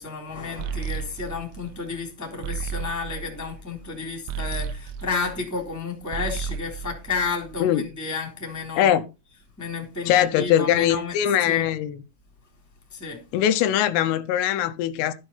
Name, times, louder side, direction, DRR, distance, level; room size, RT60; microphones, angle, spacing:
voice 1, 0.0-9.0 9.6-11.1 11.4-11.6 12.9-13.2, left 4 dB, 5° left, 2.6 m, -31 dB
sound 1, 0.6-5.8 6.0-7.8, right 6 dB, 80° right, 3.5 m, -34 dB
voice 2, 10.1-12.0 13.3-15.1, left 10 dB, 80° left, 3.3 m, -21 dB
13.5 x 8.1 x 4.1 m
omnidirectional pair, 5.9 m